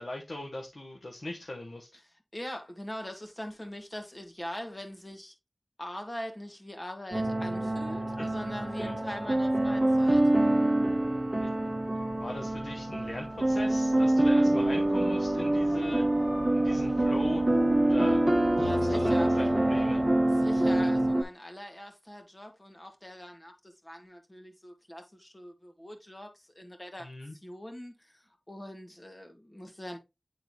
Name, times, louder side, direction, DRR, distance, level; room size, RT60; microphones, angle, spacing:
voice 1, 0.0-1.9 8.2-8.3 8.8-8.9 11.4-11.5 12.2-16.2 16.5-17.4 17.8-18.2 18.7-20.0 27.0-27.3, left 1 dB, 70° left, 1.1 m, -39 dB
voice 2, 2.0-5.3 5.8-10.2 18.6-19.3 20.3-30.0, left 1 dB, 30° left, 1.9 m, -42 dB
sound 1, 7.1-21.2, right 1 dB, 30° right, 1.3 m, -26 dB
sound 2, 7.2-21.1, equal, 10° left, 2.5 m, -40 dB
9.3 x 3.8 x 2.9 m
wide cardioid pair, 40°, 0 cm